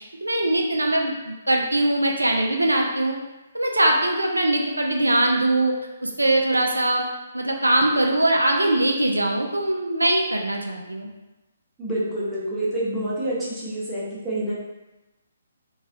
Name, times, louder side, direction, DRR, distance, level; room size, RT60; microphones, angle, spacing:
voice 1, 0.0-3.2 3.5-5.8 6.0-7.0 7.3-11.1, right 1 dB, 85° right, 1 dB, 0.3 m, -22 dB
voice 2, 11.8-14.5, right 1 dB, 10° right, -9 dB, 0.7 m, -27 dB
2.2 x 2.0 x 2.8 m, 1.1 s
figure-of-eight pair, 135°, 0 cm